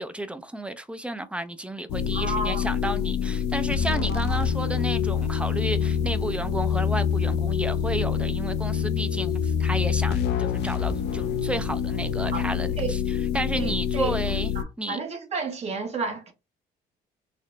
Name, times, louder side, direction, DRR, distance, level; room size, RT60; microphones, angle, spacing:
voice 1, 0.0-14.5 14.8-15.0, right 1 dB, 5° right, 0.4 m, -32 dB
sound 1, 1.9-14.6, left 8 dB, 80° left, 0.5 m, -26 dB
voice 2, 2.1-2.7 4.1-4.4 12.3-12.5 12.8-12.9 13.6-16.3, right 4 dB, 40° right, 1.2 m, -32 dB
4.1 x 2.0 x 3.1 m
cardioid pair, 110°, 17 cm